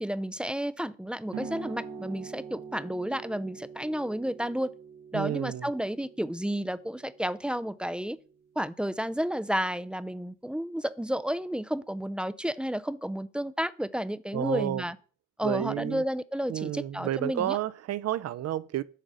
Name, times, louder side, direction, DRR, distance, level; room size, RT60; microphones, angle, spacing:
voice 1, 0.0-4.7 5.1-8.2 8.6-15.0 15.4-17.6, equal, 5° right, 0.3 m, -31 dB
sound 1, 1.3-8.5, right 5 dB, 90° right, 1.5 m, -44 dB
voice 2, 5.1-5.7 14.3-14.8 15.4-16.0 16.5-18.8, right 13 dB, 55° right, 0.5 m, -31 dB
8.3 x 3.9 x 5.4 m
cardioid pair, 90°, 30 cm